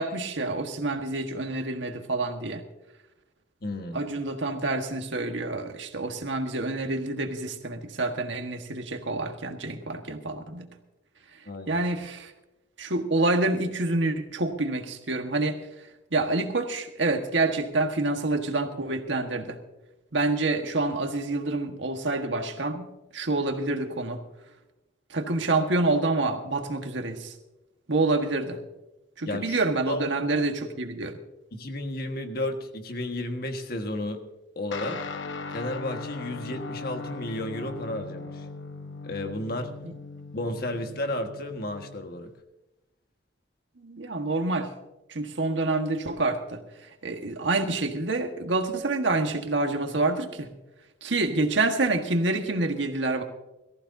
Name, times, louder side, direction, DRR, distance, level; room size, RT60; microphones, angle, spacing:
voice 1, 0.0-2.6 3.9-10.7 11.7-12.3 12.8-15.6 16.1-19.6 20.1-22.8 23.1-24.2 25.1-27.3 27.9-28.6 29.2-31.1 39.8-39.9 43.8-44.7 45.1-46.6 47.0-50.5 51.0-53.2, right 2 dB, 80° right, 5 dB, 1.6 m, -27 dB
voice 2, 3.6-4.0 11.5-11.8 29.2-30.0 31.5-34.2 34.5-35.0 35.5-38.4 39.0-39.7 40.3-42.3, left 1 dB, 55° left, 5 dB, 1.6 m, -33 dB
Guitar, 34.7-42.4, left 3 dB, 80° left, 0.9 m, -39 dB
22.5 x 14.5 x 2.7 m, 0.99 s
head